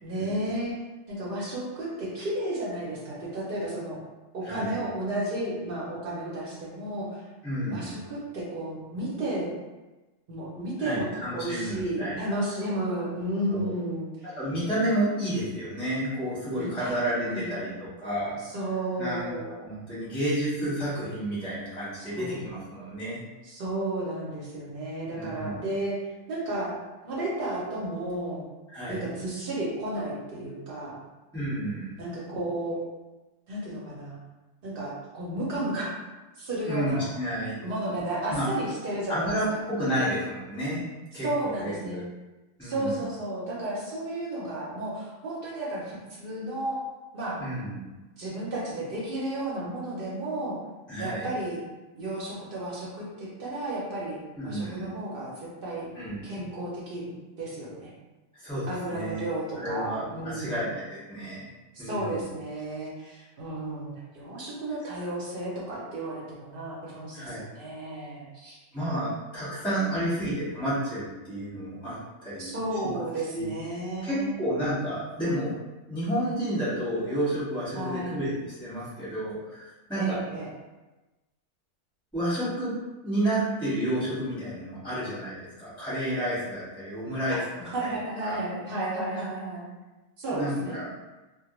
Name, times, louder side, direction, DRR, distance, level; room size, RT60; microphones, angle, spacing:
voice 1, 0.0-0.8 1.1-4.0 4.3-7.2 7.7-9.5 10.3-14.3 16.5-17.8 18.4-19.6 21.9-22.4 23.4-26.0 26.3-26.8 27.0-28.4 28.9-31.0 32.0-32.8 33.5-34.2 34.6-35.9 36.4-37.1 37.6-39.3 41.1-42.0 42.6-46.8 47.1-47.4 48.2-50.6 51.0-51.6 52.0-55.9 56.2-57.9 58.7-60.7 61.7-68.6 69.9-70.3 72.4-74.4 77.7-78.2 80.0-80.5 87.6-89.7 90.2-90.8, right 1 dB, 55° right, -5 dB, 0.7 m, -33 dB
voice 2, 4.4-4.8 7.4-7.9 10.8-12.4 13.5-13.7 14.4-18.4 19.0-19.3 19.6-23.2 25.1-25.6 28.7-29.0 31.3-31.9 36.6-37.6 38.3-38.5 39.1-40.8 41.1-42.0 42.6-43.0 47.4-47.8 50.9-51.3 54.4-54.9 55.9-56.5 58.4-59.2 59.6-61.4 61.8-62.2 67.1-67.4 68.7-72.6 73.3-73.5 74.0-75.6 75.9-80.2 82.1-82.7 83.0-87.4 87.8-88.0 88.2-88.4 90.3-90.9, right 1 dB, 5° left, -10 dB, 0.9 m, -31 dB
2.2 x 2.1 x 2.9 m, 1.1 s
omnidirectional pair, 1.4 m